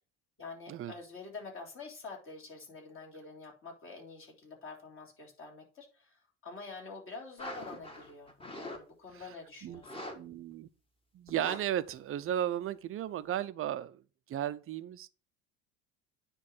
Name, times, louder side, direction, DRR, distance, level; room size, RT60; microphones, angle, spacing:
voice 1, 0.4-10.1, left 3 dB, 40° left, 3.6 m, -47 dB
sound 1, 7.4-8.8 9.1-9.3 9.7-10.2 10.5-10.6 11.3-11.6 11.9-12.0, left 1 dB, 15° left, 1.6 m, -43 dB
voice 2, 10.1-10.7 11.1-14.0 14.3-15.1, right 11 dB, 40° right, 0.7 m, -34 dB
9.5 x 3.3 x 6.1 m
supercardioid pair, 105°, 33 cm